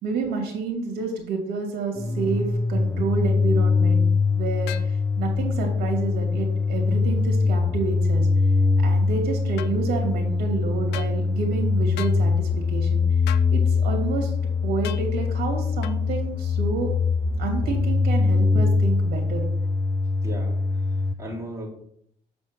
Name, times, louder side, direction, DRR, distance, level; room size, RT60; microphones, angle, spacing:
voice 1, 0.0-8.3 8.8-13.0 13.5-14.3 14.6-16.9 17.4-19.5, right 5 dB, 65° right, 1 dB, 2.4 m, -29 dB
voice 2, 1.9-2.3 19.1-19.2 20.2-21.7, right 1 dB, 15° right, -5 dB, 3.0 m, -38 dB
sound 1, 2.0-21.1, left 4 dB, 15° left, 0.3 m, -23 dB
sound 2, 4.7-4.9 9.6-9.7 10.9-11.1 12.0-12.2 13.3-13.5 14.8-15.1 15.8-16.0, left 14 dB, 85° left, 0.5 m, -36 dB
6.9 x 4.3 x 6.5 m, 0.71 s
cardioid pair, 110°, 17 cm